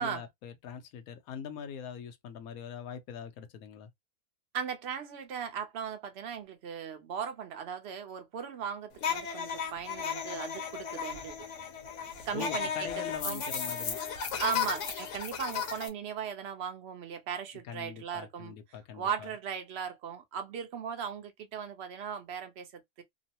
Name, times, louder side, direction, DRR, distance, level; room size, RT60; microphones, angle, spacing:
voice 1, 0.0-3.9 12.3-14.0 17.6-19.3, left 8 dB, 85° left, 1.1 m, -42 dB
voice 2, 4.5-11.5 12.3-12.7 13.0-13.4 14.4-18.6 18.9-23.0, right 7 dB, 55° right, 0.8 m, -38 dB
sound 1, 9.0-15.9, left 7 dB, 65° left, 1.0 m, -35 dB
3.0 x 2.0 x 2.7 m
omnidirectional pair, 1.5 m